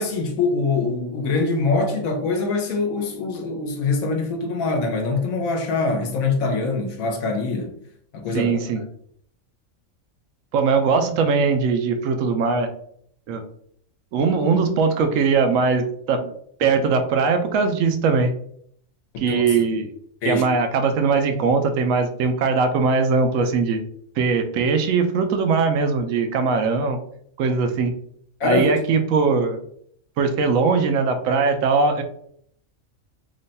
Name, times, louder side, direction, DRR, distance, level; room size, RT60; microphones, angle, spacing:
voice 1, 0.0-7.8 8.1-8.6 19.3-19.4 20.2-20.4 28.4-28.8, left 3 dB, 80° left, 1.1 m, -23 dB
voice 2, 8.3-8.8 10.5-12.7 13.3-13.5 14.1-16.3 16.6-18.3 19.2-19.9 20.2-23.8 24.2-27.0 27.4-27.9 28.4-29.6 30.2-32.0, right 4 dB, 80° right, 1.0 m, -20 dB
3.1 x 2.2 x 3.9 m
omnidirectional pair, 1.4 m